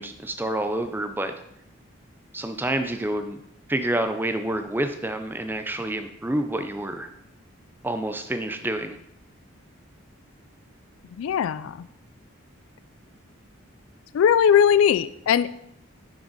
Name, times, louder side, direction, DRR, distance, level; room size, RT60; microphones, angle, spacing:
voice 1, 0.0-1.3 2.3-3.4 3.7-7.1 7.8-9.0, right 1 dB, 10° right, 7 dB, 0.4 m, -28 dB
voice 2, 11.2-11.8 14.1-15.5, left 8 dB, 75° left, 16 dB, 0.3 m, -19 dB
6.8 x 6.2 x 4.0 m, 0.76 s
head